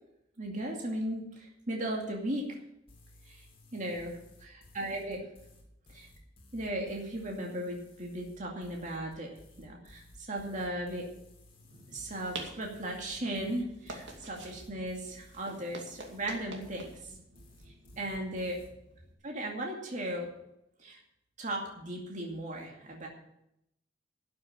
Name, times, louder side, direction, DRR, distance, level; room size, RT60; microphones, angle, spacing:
voice 1, 0.4-2.6 3.2-3.4 3.7-5.2 5.9-6.1 6.5-9.3 9.6-11.0 11.9-17.1 17.7-18.6 19.2-20.3 20.8-21.0 21.4-23.1, right 1 dB, 45° right, 0 dB, 2.4 m, -37 dB
sound 1, 2.9-18.7, left 1 dB, 30° left, 3.0 m, -57 dB
sound 2, 11.6-19.1, right 2 dB, 80° right, 2.4 m, -48 dB
12.0 x 6.9 x 9.0 m, 0.80 s
head